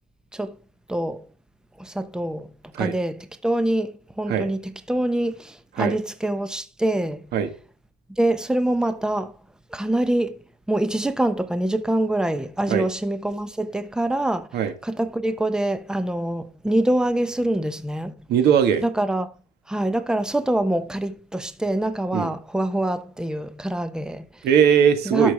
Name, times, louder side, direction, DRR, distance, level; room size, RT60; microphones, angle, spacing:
voice 1, 0.9-1.2 1.8-2.5 2.8-7.3 8.2-9.3 9.7-10.4 10.7-14.5 14.8-18.1 18.8-19.3 19.7-24.2 25.0-25.3, right 1 dB, 5° right, 1.0 m, -25 dB
voice 2, 18.3-18.8 22.1-22.3 24.4-25.3, right 8 dB, 75° right, 2.0 m, -19 dB
12.5 x 6.4 x 3.6 m
cardioid pair, 110°, 17 cm